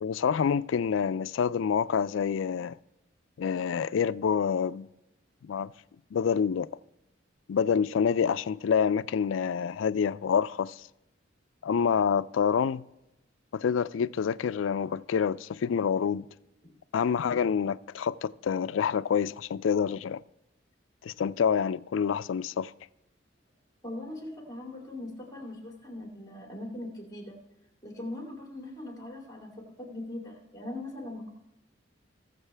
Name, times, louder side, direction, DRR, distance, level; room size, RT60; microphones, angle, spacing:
voice 1, 0.0-2.8 3.4-4.9 5.4-5.7 6.1-6.7 7.5-10.9 11.6-12.8 13.5-16.3 16.9-20.2 21.0-22.7, left 7 dB, 80° left, 0.4 m, -27 dB
voice 2, 23.8-27.4 27.8-29.5 29.8-31.3, left 1 dB, 20° left, 2.9 m, -40 dB
18.5 x 7.4 x 3.3 m
head